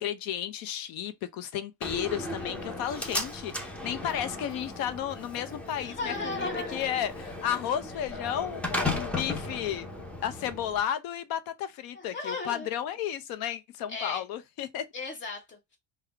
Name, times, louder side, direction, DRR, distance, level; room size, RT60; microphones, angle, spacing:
voice 1, 0.0-9.9 10.2-14.8, left 10 dB, 75° left, 0.7 m, -33 dB
Slam, 1.8-10.8, left 2 dB, 5° left, 0.6 m, -36 dB
voice 2, 5.8-6.8 11.9-12.7 13.9-14.2 14.9-15.8, left 3 dB, 30° left, 1.3 m, -36 dB
3.6 x 2.3 x 3.4 m
cardioid pair, 155°, 35 cm